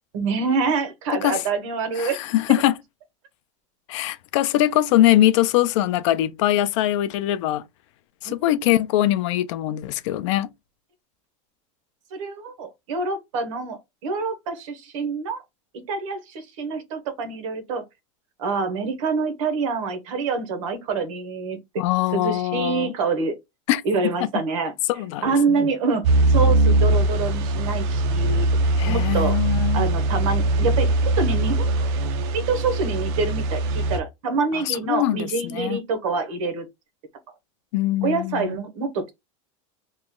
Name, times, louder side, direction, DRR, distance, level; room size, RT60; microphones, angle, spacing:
voice 1, 0.1-2.2 8.3-8.4 12.1-15.4 15.9-17.8 18.4-21.6 22.1-23.3 23.8-24.7 25.2-28.5 28.8-29.4 29.7-31.7 32.3-36.7 38.0-39.1, right 4 dB, 70° right, 0.9 m, -26 dB
voice 2, 2.0-2.8 3.9-7.6 8.2-10.5 21.8-22.9 23.7-24.1 24.9-25.6 28.8-29.9 34.5-35.8 37.7-38.6, left 14 dB, 60° left, 0.4 m, -22 dB
sound 1, 26.0-34.0, right 2 dB, 45° right, 0.5 m, -21 dB
3.0 x 2.2 x 3.5 m
supercardioid pair, 165°, 17 cm